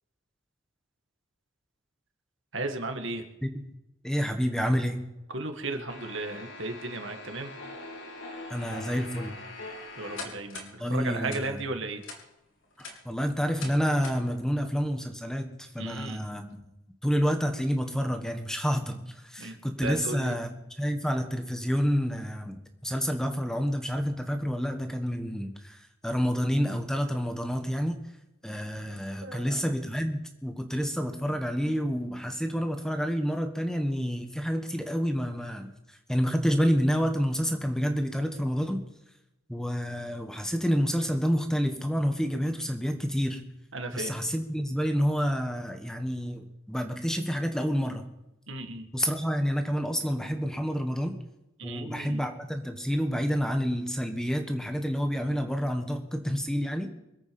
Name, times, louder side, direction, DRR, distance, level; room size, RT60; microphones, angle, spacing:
voice 1, 2.5-3.2 5.3-7.5 10.0-12.0 15.8-16.2 19.4-19.5 19.8-20.3 29.2-29.6 43.7-44.2 48.5-48.9 51.6-52.2, right 2 dB, 60° right, 6 dB, 1.9 m, -35 dB
voice 2, 4.0-5.0 8.5-9.4 10.8-11.7 12.8-16.6 17.0-28.0 28.4-35.7 36.1-38.8 39.5-43.4 43.9-48.1 48.9-51.2 51.6-56.9, equal, 5° left, 6 dB, 1.4 m, -29 dB
sound 1, 5.9-10.7 11.3-11.4 12.0-12.2 12.6-12.9 13.6-13.7 14.0-14.2, left 2 dB, 65° left, 3.6 m, -42 dB
25.0 x 8.5 x 5.3 m, 0.95 s
head